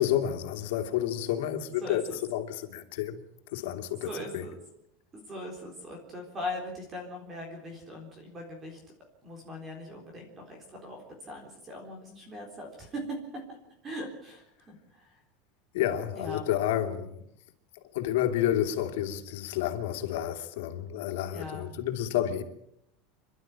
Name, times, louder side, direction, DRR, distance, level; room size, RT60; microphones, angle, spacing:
voice 1, 0.0-3.2 3.5-4.5 15.7-17.3 17.9-22.4, left 11 dB, 80° left, 2.7 m, -30 dB
voice 2, 1.8-2.2 4.1-4.5 5.1-8.8 9.2-13.2 13.8-14.5 14.9-15.2 16.1-16.4 21.3-21.7, left 1 dB, 20° right, 3.9 m, -40 dB
28.0 x 12.0 x 8.9 m
supercardioid pair, 175°, 0 cm